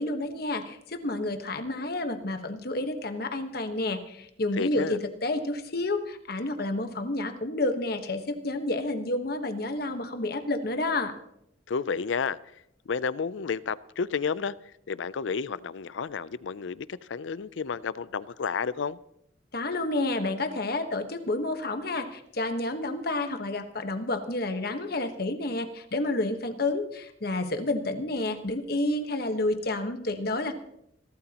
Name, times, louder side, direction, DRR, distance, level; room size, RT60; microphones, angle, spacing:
voice 1, 0.0-11.1 19.5-30.5, left 2 dB, 50° left, 1.3 m, -30 dB
voice 2, 4.6-5.0 11.7-12.4 12.9-14.5 14.9-19.0, left 5 dB, 75° left, 0.5 m, -31 dB
26.5 x 12.5 x 2.9 m
head